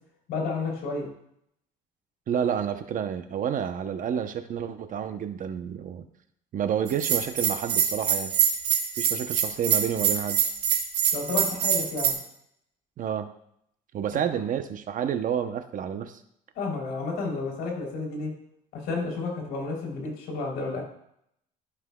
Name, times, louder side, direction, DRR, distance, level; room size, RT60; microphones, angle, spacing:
voice 1, 0.3-1.1 11.1-12.2 16.5-18.3 18.7-20.8, left 3 dB, 80° left, -1 dB, 3.4 m, -31 dB
voice 2, 2.3-6.0 6.5-8.3 9.0-10.4 13.0-13.3 13.9-16.2, right 8 dB, 50° right, 9 dB, 0.8 m, -29 dB
Bell, 6.9-12.1, right 8 dB, 75° right, 1.7 m, -24 dB
15.0 x 5.8 x 2.3 m, 0.73 s
cardioid pair, 110°, 17 cm